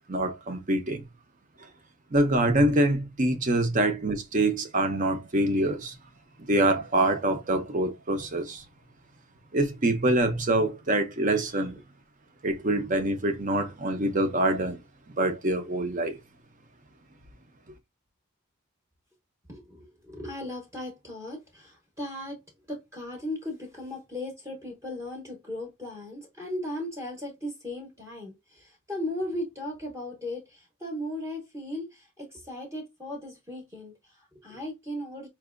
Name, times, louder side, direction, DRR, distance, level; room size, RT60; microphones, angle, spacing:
voice 1, 0.1-1.0 2.1-5.9 6.5-8.6 9.5-11.8 12.4-14.8 15.2-16.2, right 1 dB, 40° right, 0.7 m, -25 dB
voice 2, 19.5-22.4 22.7-35.3, left 1 dB, 15° right, 0.9 m, -37 dB
4.6 x 2.7 x 2.5 m
head